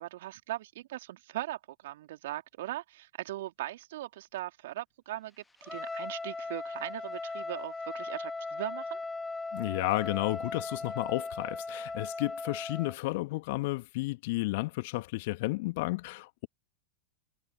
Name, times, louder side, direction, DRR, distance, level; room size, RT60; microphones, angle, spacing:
voice 1, 0.0-9.0, right 15 dB, 60° right, 3.4 m, -39 dB
Trumpet, 5.6-13.0, left 3 dB, 10° left, 1.5 m, -38 dB
voice 2, 9.5-16.5, left 22 dB, 55° left, 2.1 m, -32 dB
figure-of-eight pair, 90°, 0 cm